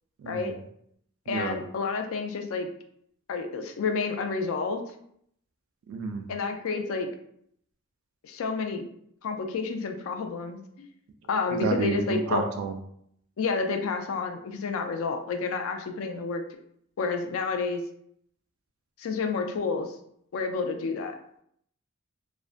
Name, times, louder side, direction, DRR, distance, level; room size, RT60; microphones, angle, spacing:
voice 1, 0.2-0.6 1.3-1.6 5.9-6.3 11.5-12.8, right 4 dB, 75° right, 5 dB, 0.3 m, -30 dB
voice 2, 1.3-2.7 3.3-4.8 6.3-7.1 8.2-8.8 9.2-10.9 11.3-12.4 13.4-16.4 17.0-17.8 19.0-20.0 20.3-21.1, left 4 dB, 80° left, 5 dB, 0.4 m, -30 dB
2.4 x 2.1 x 2.4 m, 0.69 s
head